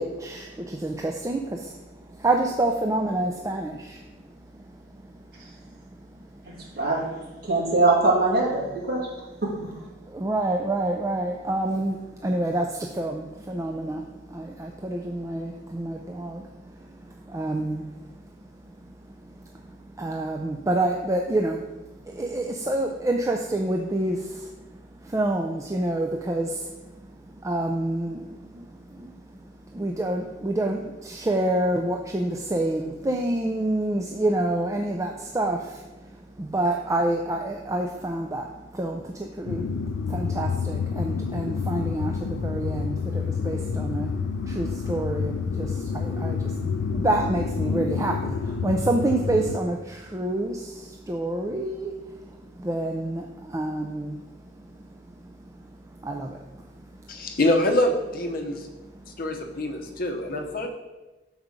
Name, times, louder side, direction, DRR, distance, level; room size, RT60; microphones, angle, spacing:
voice 1, 0.0-1.7 2.1-4.0 4.5-5.0 6.2-6.7 10.0-18.1 18.8-24.5 25.0-26.9 27.3-29.1 29.4-36.1 36.4-54.2 54.6-55.7 56.0-56.8, right 1 dB, 15° right, 2 dB, 0.4 m, -28 dB
voice 2, 6.4-7.0 7.4-9.0 9.4-9.5, right 2 dB, 55° right, -5 dB, 2.5 m, -22 dB
sound 1, 39.5-49.6, left 5 dB, 90° left, 0.4 m, -28 dB
voice 3, 57.1-58.7 59.2-60.7, left 1 dB, 50° left, 3 dB, 0.8 m, -25 dB
6.7 x 4.7 x 5.1 m, 1.1 s
head